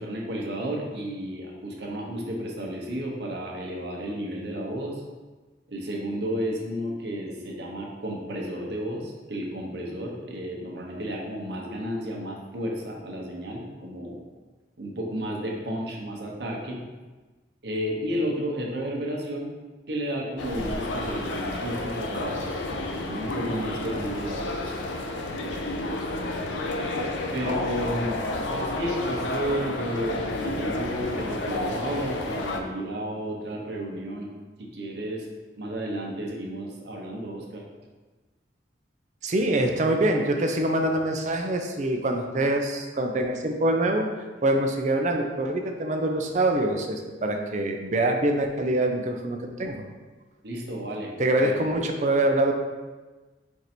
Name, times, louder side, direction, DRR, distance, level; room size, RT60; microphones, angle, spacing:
voice 1, 0.0-5.0 5.7-14.2 14.8-16.8 17.6-19.5 19.9-24.7 25.3-26.4 27.3-28.2 28.5-34.3 34.6-35.3 35.6-37.6 50.4-51.1 51.4-51.6, equal, 70° right, -1 dB, 0.9 m, -32 dB
sound 1, 20.4-32.6, left 2 dB, 90° left, 0.5 m, -30 dB
voice 2, 39.2-44.1 44.4-49.8 51.2-52.5, right 1 dB, 40° right, 3 dB, 0.5 m, -25 dB
4.6 x 2.6 x 4.2 m, 1.3 s
head